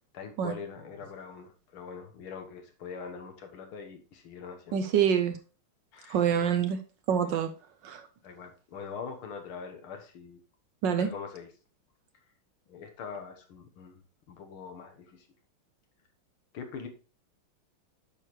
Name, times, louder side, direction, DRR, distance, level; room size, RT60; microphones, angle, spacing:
voice 1, 0.1-4.8 5.9-6.2 8.2-10.4 11.0-11.5 12.7-14.0 14.3-15.3 16.5-16.9, left 6 dB, 75° left, 6 dB, 2.1 m, -43 dB
voice 2, 4.7-5.4 6.1-6.8 7.1-7.5 7.8-8.1 10.8-11.1, right 8 dB, 70° right, 9 dB, 1.2 m, -26 dB
9.0 x 6.3 x 3.2 m, 0.35 s
omnidirectional pair, 2.4 m